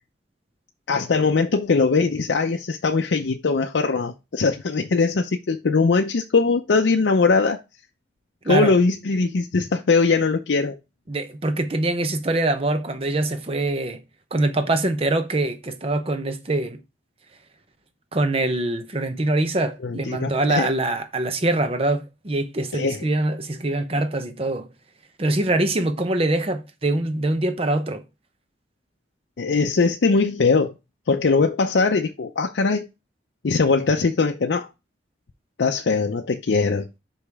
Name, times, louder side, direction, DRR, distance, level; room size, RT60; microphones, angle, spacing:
voice 1, 0.9-7.6 8.4-10.8 19.8-20.7 22.7-23.0 29.4-30.7 31.1-32.9 33.4-34.7 35.6-36.9, left 4 dB, 75° left, 0.5 m, -21 dB
voice 2, 11.1-14.0 14.3-16.8 18.1-24.7 25.2-28.0, right 2 dB, 30° right, 0.8 m, -24 dB
5.4 x 5.0 x 3.5 m
head